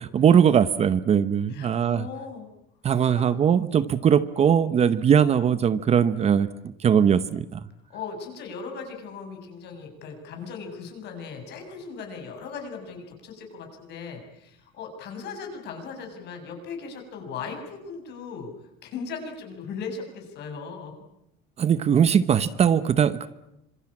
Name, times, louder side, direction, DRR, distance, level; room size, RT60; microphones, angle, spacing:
voice 1, 0.0-2.1 2.8-6.5 6.8-7.6 21.6-23.3, right 8 dB, 30° right, 15 dB, 0.9 m, -20 dB
voice 2, 1.5-2.5 3.2-3.3 7.9-18.5 18.8-20.9, left 5 dB, 55° left, 4 dB, 7.0 m, -38 dB
26.5 x 23.0 x 8.7 m, 0.83 s
cardioid pair, 145°, 21 cm